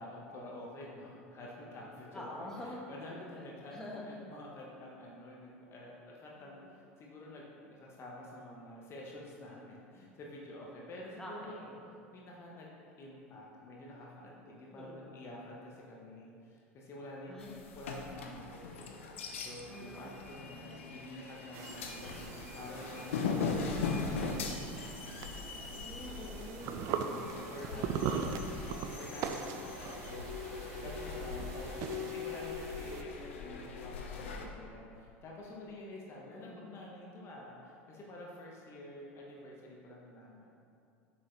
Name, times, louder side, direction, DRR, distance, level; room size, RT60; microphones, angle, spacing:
voice 1, 0.0-11.7 12.1-12.7 13.0-17.4 17.7-18.9 19.4-22.1 22.5-24.8 26.8-28.1 28.7-40.5, left 1 dB, 35° left, -3 dB, 1.2 m, -49 dB
voice 2, 2.1-2.8 3.7-4.1 6.4-6.7 11.2-11.8 14.7-15.2 17.3-17.6 19.7-20.1 20.7-20.9 25.7-27.1 27.7-28.4 36.3-36.8, left 1 dB, 5° left, -4 dB, 1.3 m, -46 dB
sound 1, 17.4-34.5, left 4 dB, 65° left, 0.7 m, -40 dB
sound 2, 21.5-33.0, right 7 dB, 45° right, 0.5 m, -41 dB
7.6 x 6.2 x 3.2 m, 2.4 s
figure-of-eight pair, 75°, 7 cm